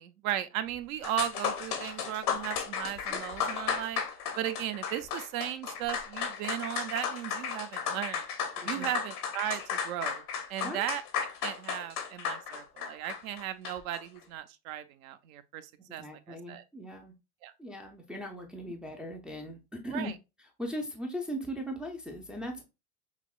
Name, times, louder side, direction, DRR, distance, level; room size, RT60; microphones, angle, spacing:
voice 1, 0.0-4.0 4.4-8.3 8.6-10.2 10.5-11.0 11.4-16.6 17.4-17.5 19.9-20.1, right 12 dB, 65° right, 0.6 m, -36 dB
sound 1, 0.7-0.8 1.0-14.0, left 7 dB, 90° left, 1.1 m, -34 dB
voice 2, 8.6-8.9 10.6-10.9 16.0-17.1 17.6-20.1 20.6-22.6, equal, ahead, 0.3 m, -39 dB
5.7 x 2.0 x 2.3 m
hypercardioid pair, 110°, 45 cm